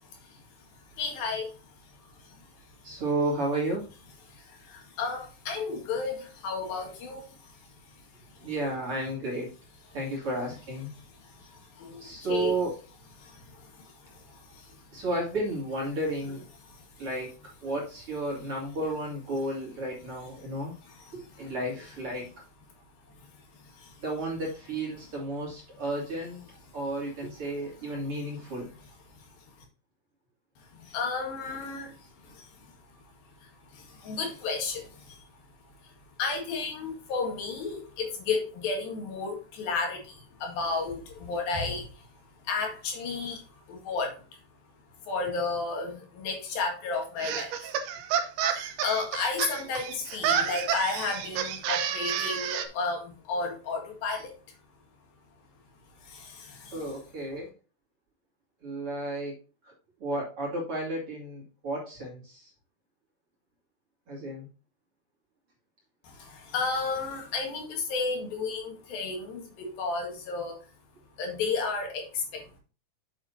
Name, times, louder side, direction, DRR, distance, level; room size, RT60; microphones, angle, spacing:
voice 1, 0.1-2.8 4.3-8.5 11.2-12.5 13.2-15.0 16.7-17.1 20.9-21.6 23.2-24.0 29.1-29.3 30.6-32.8 33.4-35.3 35.8-42.1 42.4-44.4 45.0-47.5 48.5-54.3 56.0-56.8 66.0-70.6 71.2-72.6, left 4 dB, 70° left, 2 dB, 3.6 m, -34 dB
voice 2, 2.8-3.9 8.4-9.5 9.9-10.9 12.0-12.8 14.9-16.4 17.0-17.3 17.6-20.7 21.1-22.3 24.0-26.4 26.7-28.7 56.7-57.5 58.6-59.4 60.0-62.5 64.1-64.5, right 1 dB, 40° right, -3 dB, 3.3 m, -32 dB
sound 1, 47.2-52.7, right 8 dB, 80° right, 2.9 m, -30 dB
8.2 x 7.4 x 2.8 m, 0.33 s
omnidirectional pair, 4.4 m